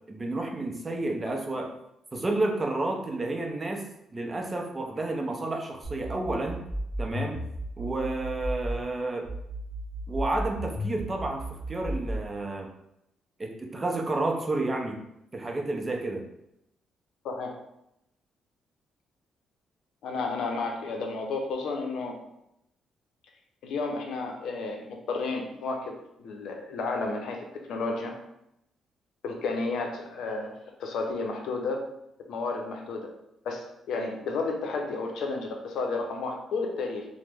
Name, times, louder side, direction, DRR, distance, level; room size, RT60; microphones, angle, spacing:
voice 1, 0.1-1.7 2.1-3.8 4.1-6.6 7.0-7.4 7.8-9.3 10.1-12.7 13.4-15.0 15.3-16.3, right 2 dB, 25° right, 2 dB, 0.5 m, -30 dB
sound 1, 5.8-8.8 9.2-12.3, right 1 dB, 5° right, 1.0 m, -34 dB
voice 2, 20.0-22.2 23.6-28.2 29.2-31.8 32.3-33.1 33.4-37.1, left 3 dB, 75° left, 2 dB, 0.5 m, -32 dB
3.0 x 2.0 x 3.4 m, 0.82 s
cardioid pair, 90°, 0 cm